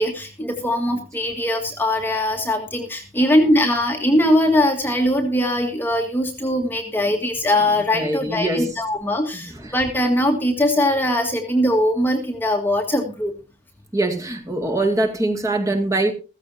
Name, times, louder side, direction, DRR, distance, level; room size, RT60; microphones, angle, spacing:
voice 1, 0.0-13.3, left 1 dB, 10° left, 1.6 m, -21 dB
voice 2, 7.9-8.8 9.3-9.7 13.9-16.1, right 2 dB, 15° right, 2.1 m, -23 dB
15.5 x 15.0 x 2.8 m
head